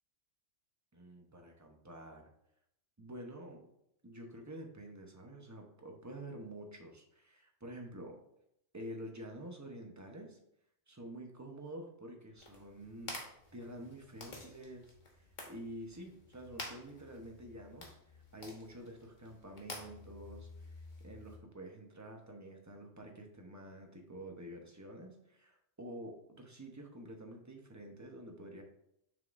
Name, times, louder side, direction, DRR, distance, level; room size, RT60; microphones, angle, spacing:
voice 1, 0.9-2.3 3.0-3.7 4.0-8.2 8.7-10.4 10.9-28.6, right 1 dB, 15° right, 2 dB, 0.9 m, -49 dB
sound 1, 12.4-21.4, left 2 dB, 35° left, 1.3 m, -50 dB
7.0 x 6.5 x 2.6 m, 0.76 s
omnidirectional pair, 1.4 m